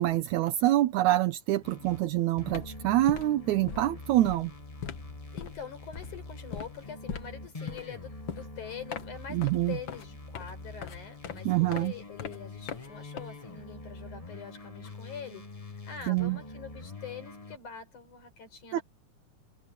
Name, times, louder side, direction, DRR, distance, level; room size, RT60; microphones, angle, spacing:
voice 1, 0.0-4.5 9.3-9.8 11.5-11.9 16.1-16.4 18.7-18.8, right 15 dB, 75° right, 2.2 m, -26 dB
sound 1, 1.6-2.1 2.4-17.6, left 2 dB, 20° left, 0.9 m, -45 dB
sound 2, 1.9-2.1 2.3-13.8, left 7 dB, 50° left, 1.7 m, -42 dB
voice 2, 5.3-18.8, left 7 dB, 75° left, 6.4 m, -44 dB
omnidirectional pair, 3.5 m